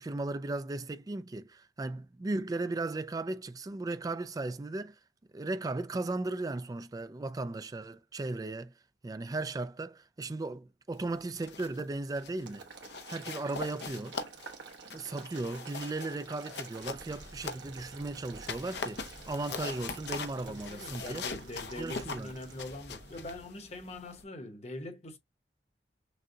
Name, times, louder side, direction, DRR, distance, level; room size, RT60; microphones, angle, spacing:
voice 1, 0.0-5.0 5.3-8.7 9.0-12.6 13.1-14.2 14.9-21.2 21.8-22.3, right 2 dB, 20° right, 0.3 m, -36 dB
sound 1, 11.2-11.8 12.1-12.4 12.8-17.9 18.3-24.2, left 4 dB, 65° left, 0.7 m, -42 dB
Boiling, 12.5-22.8, right 5 dB, 80° right, 1.1 m, -50 dB
sound 2, 16.8-23.6, right 1 dB, 65° right, 1.7 m, -53 dB
voice 2, 20.5-25.2, left 2 dB, 35° left, 0.9 m, -43 dB
6.2 x 2.2 x 2.7 m
head